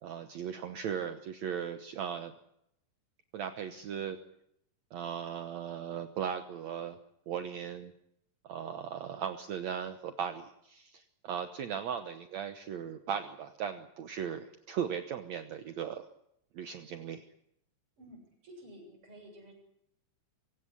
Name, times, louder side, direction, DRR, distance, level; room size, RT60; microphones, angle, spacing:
voice 1, 0.0-2.3 3.3-4.2 4.9-7.0 7.3-7.9 8.4-16.1 16.5-17.3, right 8 dB, 65° right, 8 dB, 2.0 m, -37 dB
voice 2, 18.0-19.5, equal, 40° right, 2 dB, 8.1 m, -52 dB
24.5 x 16.5 x 9.8 m, 0.78 s
omnidirectional pair, 4.0 m